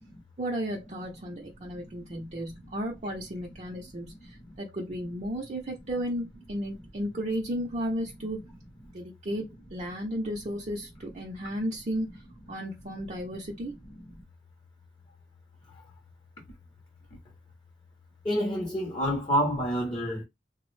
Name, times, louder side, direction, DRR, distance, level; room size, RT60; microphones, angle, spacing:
voice 1, 0.4-8.4 8.9-9.5 9.7-12.1 12.5-13.7, equal, 35° right, 0.5 m, -34 dB
voice 2, 18.2-20.2, equal, 25° left, 0.6 m, -28 dB
3.4 x 2.0 x 3.1 m
head